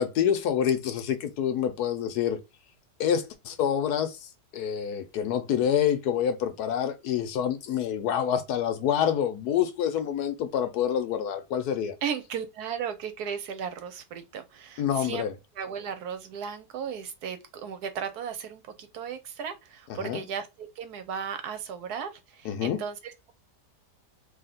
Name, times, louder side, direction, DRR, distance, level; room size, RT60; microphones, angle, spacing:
voice 1, 0.0-2.4 3.0-4.2 4.5-11.9 14.8-15.3 20.0-20.2 22.4-22.8, left 9 dB, 70° left, 1.2 m, -27 dB
voice 2, 12.0-15.3 15.6-23.3, right 7 dB, 75° right, 1.2 m, -35 dB
2.8 x 2.8 x 4.0 m
omnidirectional pair, 1.8 m